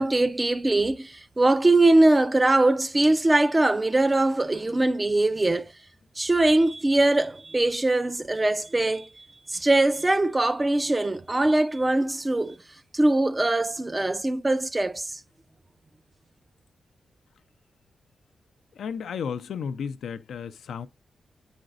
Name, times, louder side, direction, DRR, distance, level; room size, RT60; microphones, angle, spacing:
voice 1, 0.0-5.7 6.2-12.6 12.9-15.2, right 2 dB, 25° right, 0.5 m, -22 dB
voice 2, 18.7-20.9, left 7 dB, 85° left, 0.4 m, -33 dB
7.7 x 5.0 x 2.5 m
cardioid pair, 55°, 0 cm